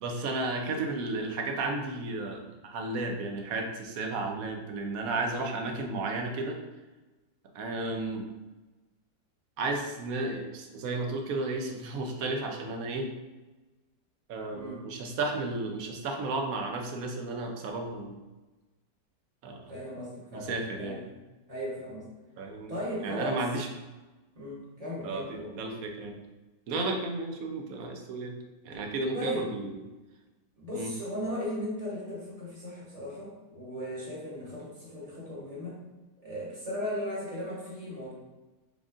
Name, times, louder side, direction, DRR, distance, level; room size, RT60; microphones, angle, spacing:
voice 1, 0.0-6.6 7.5-8.3 9.6-13.1 14.3-18.2 19.4-19.6 20.3-21.0 22.4-22.7 23.0-23.7 25.0-26.2 26.7-28.4 28.6-29.7 30.7-30.9, right 2 dB, 70° right, 3 dB, 1.1 m, -33 dB
voice 2, 14.5-14.8 19.7-21.1 21.5-22.1 22.7-23.4 24.3-25.5 29.1-29.5 30.6-35.8 36.2-38.1, equal, 25° right, -6 dB, 1.1 m, -36 dB
5.1 x 3.6 x 2.5 m, 1.1 s
omnidirectional pair, 1.6 m